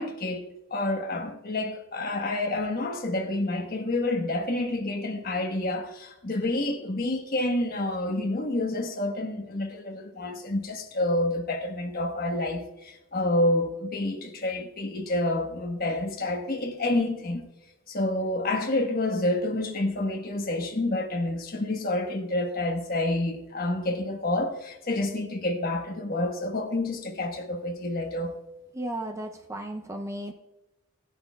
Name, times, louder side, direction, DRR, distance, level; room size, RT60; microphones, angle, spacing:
voice 1, 0.0-17.5 17.9-28.3, left 2 dB, 40° left, 1.3 m, -28 dB
voice 2, 28.7-30.3, right 1 dB, 15° right, 0.5 m, -34 dB
16.5 x 10.5 x 2.3 m
head